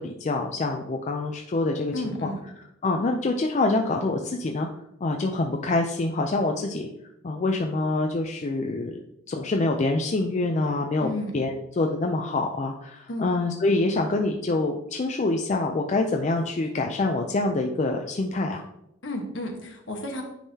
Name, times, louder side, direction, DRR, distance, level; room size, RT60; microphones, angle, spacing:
voice 1, 0.0-1.9 2.2-2.3 2.8-4.7 5.0-6.9 7.2-9.0 9.3-11.1 11.3-18.6, left 2 dB, 35° left, 3 dB, 0.4 m, -26 dB
voice 2, 1.9-2.4 11.0-11.3 13.1-13.3 19.0-20.2, left 1 dB, 65° left, 2 dB, 1.2 m, -32 dB
9.9 x 3.7 x 2.8 m, 0.82 s
head